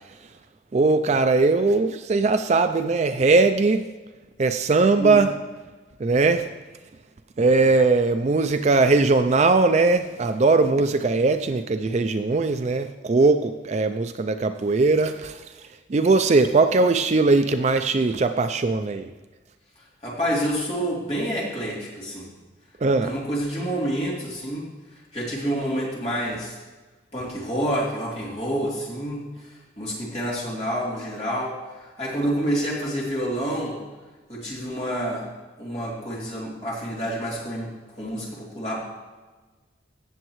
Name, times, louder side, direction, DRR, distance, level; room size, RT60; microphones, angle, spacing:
voice 1, 0.7-3.9 4.4-5.3 6.0-6.5 7.4-19.1 22.8-23.2, right 3 dB, 35° right, 9 dB, 0.4 m, -20 dB
voice 2, 20.0-22.3 23.0-24.7 25.1-26.6 27.1-29.5 29.8-33.8 34.3-35.3 35.6-38.8, equal, 30° left, -5 dB, 3.1 m, -28 dB
16.0 x 7.3 x 3.1 m, 1.3 s
head